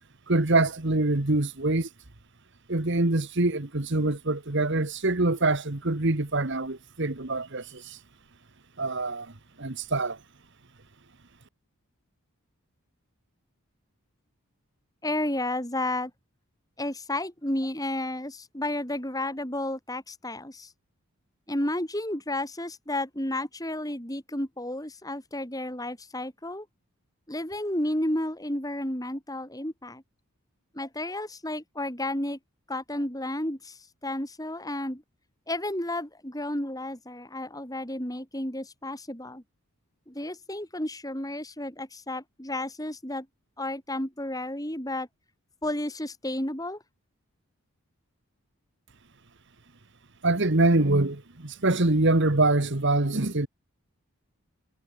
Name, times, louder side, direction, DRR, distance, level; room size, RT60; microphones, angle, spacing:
voice 1, 0.3-1.9 2.7-8.0 8.8-9.3 9.6-10.2 50.2-53.5, right 2 dB, 50° right, 1.5 m, -24 dB
voice 2, 15.0-16.1 16.8-20.7 21.5-26.7 27.3-30.0 30.7-32.4 32.7-35.0 35.5-39.4 40.1-43.3 43.6-45.1 45.6-46.8, left 1 dB, 15° left, 3.7 m, -32 dB
head